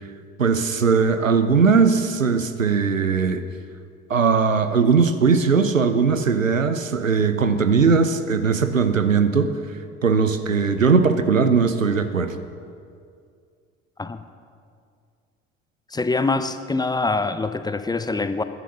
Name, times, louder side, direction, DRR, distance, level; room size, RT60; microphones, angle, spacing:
voice 1, 0.4-3.4 4.1-9.6 10.0-12.4, right 5 dB, 90° right, 10 dB, 0.6 m, -19 dB
voice 2, 15.9-18.4, left 3 dB, 10° left, 11 dB, 0.6 m, -24 dB
15.5 x 10.5 x 5.6 m, 2.3 s
figure-of-eight pair, 55°, 38 cm